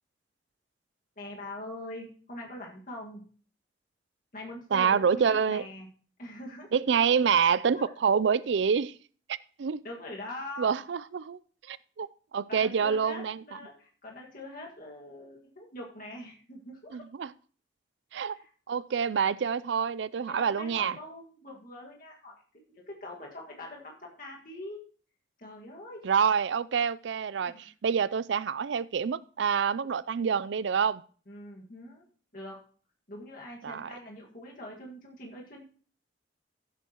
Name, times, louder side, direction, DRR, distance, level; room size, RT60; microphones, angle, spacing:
voice 1, 1.2-3.2 4.3-5.9 6.2-6.7 7.7-7.9 9.8-10.8 12.5-16.9 18.1-18.5 20.2-22.3 22.7-24.8 25.4-26.0 27.4-27.7 31.3-32.0 32.3-32.6 33.1-35.6, left 1 dB, 50° left, 1.9 m, -43 dB
voice 2, 4.7-5.6 6.7-8.9 9.6-9.8 10.6-11.4 11.7-12.1 12.3-13.4 16.9-17.3 18.1-18.4 18.7-21.0 26.0-31.0 33.6-33.9, right 6 dB, 70° right, 0.4 m, -27 dB
15.0 x 8.3 x 3.0 m
head